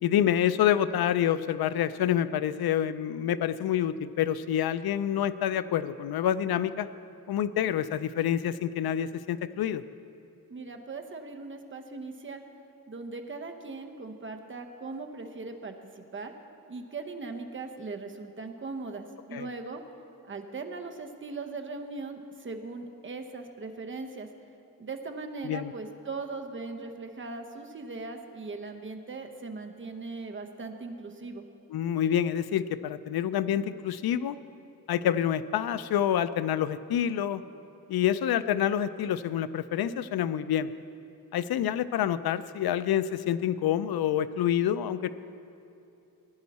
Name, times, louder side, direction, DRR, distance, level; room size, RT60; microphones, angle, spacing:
voice 1, 0.0-6.9 7.3-9.8 19.3-19.5 25.4-25.7 31.7-34.4 34.9-37.4 37.9-40.7 41.3-45.1, left 10 dB, 80° left, 14 dB, 0.5 m, -27 dB
voice 2, 10.5-12.4 12.9-16.3 16.7-19.8 20.2-24.3 24.8-31.4, right 3 dB, 30° right, 5 dB, 0.9 m, -39 dB
15.0 x 10.5 x 4.2 m, 2.8 s
wide cardioid pair, 120°, 37 cm